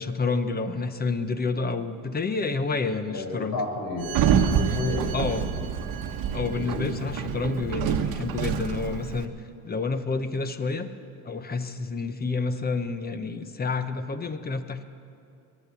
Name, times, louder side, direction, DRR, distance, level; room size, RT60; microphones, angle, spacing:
voice 1, 0.0-3.6 5.1-5.5 6.3-9.3 9.6-10.9 11.2-14.8, left 4 dB, 25° left, 10 dB, 0.9 m, -29 dB
voice 2, 3.1-5.6 6.3-7.1, left 1 dB, 50° left, 0 dB, 5.2 m, -32 dB
Sliding door, 4.0-9.2, right 8 dB, 60° right, 1.1 m, -27 dB
22.0 x 9.0 x 7.1 m, 2.5 s
supercardioid pair, 100°, 40 cm